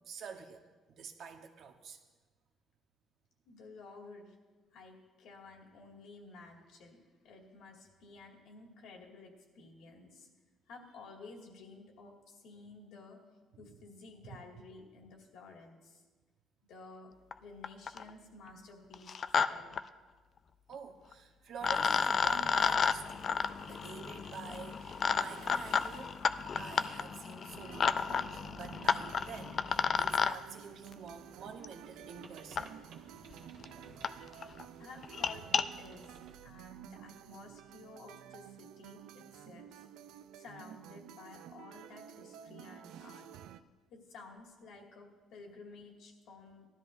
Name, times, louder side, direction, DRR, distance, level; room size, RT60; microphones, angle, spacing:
voice 1, 0.0-2.0 13.6-13.7 20.7-23.3 23.6-26.2 26.6-32.7, right 6 dB, 55° right, 4 dB, 1.0 m, -48 dB
voice 2, 3.5-4.4 4.7-7.0 7.2-10.3 10.7-13.2 13.6-16.0 16.7-17.1 17.4-19.1 19.5-19.8 34.8-39.9 40.1-43.3 43.9-46.7, left 3 dB, 65° left, 1 dB, 2.1 m, -53 dB
sound 1, 17.3-17.4 17.6-18.1 18.9-19.5 19.7-19.8 21.1-21.2 21.6-30.3 31.6-31.7 32.6-32.7 33.3-33.4 33.6-33.7 34.0-34.1 34.4-34.6 35.0-35.6, left 6 dB, 30° left, 0.3 m, -32 dB
sound 2, 21.8-36.4, right 5 dB, 70° right, 1.4 m, -58 dB
sound 3, 27.6-43.6, right 10 dB, 85° right, 0.4 m, -52 dB
19.0 x 13.0 x 2.6 m, 1.3 s
cardioid pair, 175°, 0 cm